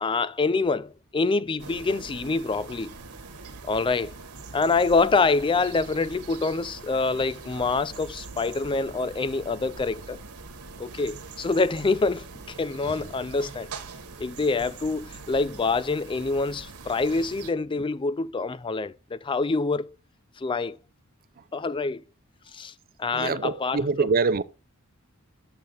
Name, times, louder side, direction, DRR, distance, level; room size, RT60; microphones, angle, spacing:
voice 1, 0.0-2.9 3.6-4.1 4.5-10.2 10.8-13.7 14.2-19.9 20.4-20.8 21.5-22.0 22.5-22.7 23.0-24.1, left 3 dB, 25° left, 0.4 m, -26 dB
sound 1, 1.6-17.5, right 4 dB, 90° right, 1.4 m, -43 dB
voice 2, 23.1-24.4, right 4 dB, 40° right, 0.5 m, -24 dB
7.1 x 6.7 x 3.9 m
head